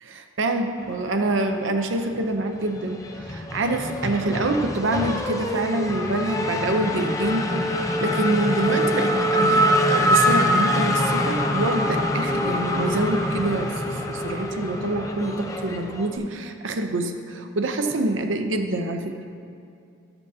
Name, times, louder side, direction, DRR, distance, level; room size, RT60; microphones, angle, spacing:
voice 1, 0.0-19.2, right 2 dB, 90° right, 5 dB, 0.7 m, -26 dB
Race car auto racing / Accelerating revving vroom, 1.2-2.2 2.5-16.2, equal, 15° left, 0.6 m, -24 dB
13.5 x 7.0 x 2.8 m, 2.6 s
head